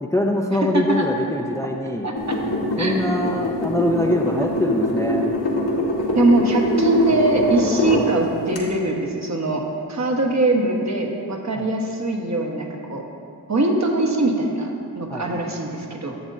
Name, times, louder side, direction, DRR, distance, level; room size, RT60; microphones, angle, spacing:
voice 1, 0.0-2.1 2.8-5.2 11.6-11.7 15.1-15.4, left 1 dB, 5° left, 1 dB, 0.6 m, -23 dB
voice 2, 0.6-1.0 2.0-2.3 2.8-3.0 6.1-9.6 9.9-13.0 13.5-16.1, right 2 dB, 40° right, 1 dB, 1.3 m, -22 dB
sound 1, 2.1-8.1 8.5-8.6, left 1 dB, 65° left, 1.6 m, -23 dB
10.5 x 7.0 x 2.7 m, 2.4 s
supercardioid pair, 40°, 43 cm